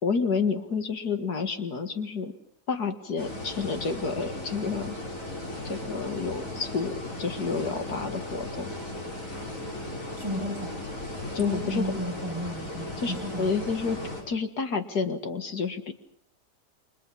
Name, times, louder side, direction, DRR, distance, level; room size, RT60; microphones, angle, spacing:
voice 1, 0.0-2.3 2.7-5.0 5.6-8.7 11.3-11.8 13.0-14.0 14.3-15.9, left 5 dB, 75° left, 7 dB, 2.4 m, -29 dB
sound 1, 3.2-14.2, left 1 dB, 55° left, 5.8 m, -36 dB
voice 2, 10.2-10.8 11.4-13.5, equal, 15° right, 2 dB, 8.0 m, -33 dB
30.0 x 24.0 x 5.6 m, 0.69 s
omnidirectional pair, 1.7 m